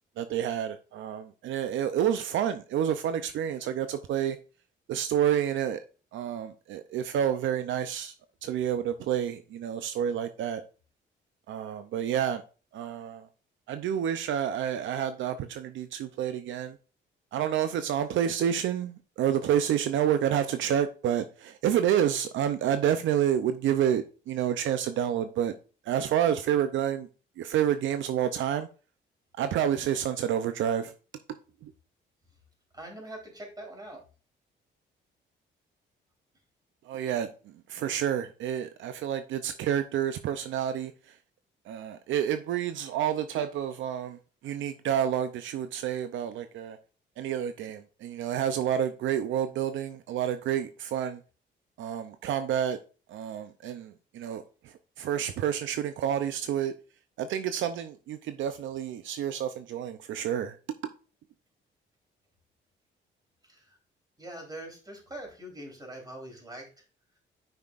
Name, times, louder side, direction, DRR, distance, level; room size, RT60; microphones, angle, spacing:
voice 1, 0.2-4.4 4.9-5.8 6.1-8.1 8.4-10.6 11.5-12.4 12.7-13.3 13.7-16.8 17.3-25.5 25.9-27.1 27.4-28.7 29.3-30.9 31.6-31.7 36.8-37.3 37.7-41.2 41.7-44.2 44.4-46.8 47.2-51.2 51.8-52.8 53.1-56.7 57.2-60.6, right 9 dB, 75° right, 0.6 m, -29 dB
voice 2, 32.7-34.0 63.5-63.6 64.2-66.7, right 1 dB, 20° right, 3.6 m, -43 dB
8.8 x 5.8 x 2.5 m
cardioid pair, 90°, 20 cm